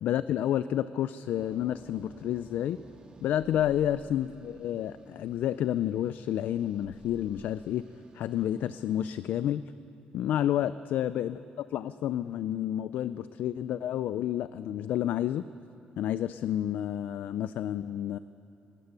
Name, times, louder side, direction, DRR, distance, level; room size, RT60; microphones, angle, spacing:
voice 1, 0.0-2.8 3.2-7.8 8.1-9.6 10.1-15.4 16.0-18.2, left 11 dB, 65° left, 14 dB, 0.4 m, -30 dB
sound 1, 1.4-9.2, right 3 dB, 30° right, 1.8 m, -54 dB
20.0 x 18.5 x 8.3 m, 3.0 s
cardioid pair, 175°, 3 cm